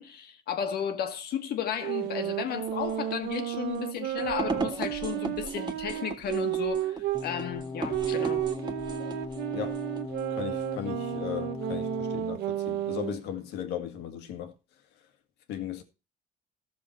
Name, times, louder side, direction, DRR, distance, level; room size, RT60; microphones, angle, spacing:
voice 1, 0.0-8.4, left 8 dB, 65° left, 1.7 m, -34 dB
sound 1, 1.8-7.3 7.9-13.2, right 12 dB, 85° right, 1.1 m, -32 dB
sound 2, 2.6-10.8, right 4 dB, 25° right, 1.7 m, -38 dB
sound 3, 7.1-12.2, left 4 dB, 40° left, 1.9 m, -39 dB
voice 2, 10.3-14.5 15.5-15.8, left 10 dB, 85° left, 1.9 m, -37 dB
13.5 x 6.9 x 4.5 m
cardioid pair, 110°, 17 cm